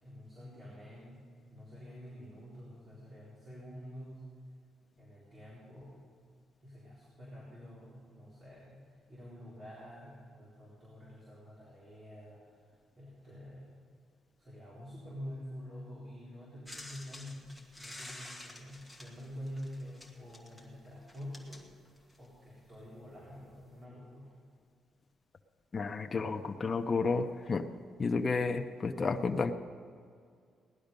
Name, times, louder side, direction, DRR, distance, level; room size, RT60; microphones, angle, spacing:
voice 1, 0.0-4.3 5.0-6.0 6.6-13.8 14.4-17.5 17.8-21.6 22.2-24.4, equal, 35° right, -7 dB, 4.0 m, -48 dB
sound 1, 16.7-22.4 23.3-23.4, left 1 dB, 5° right, 1.6 m, -50 dB
voice 2, 25.7-27.7 28.0-29.5, left 4 dB, 30° left, 4 dB, 0.6 m, -31 dB
17.5 x 11.5 x 5.2 m, 2.2 s
cardioid pair, 145°, 0 cm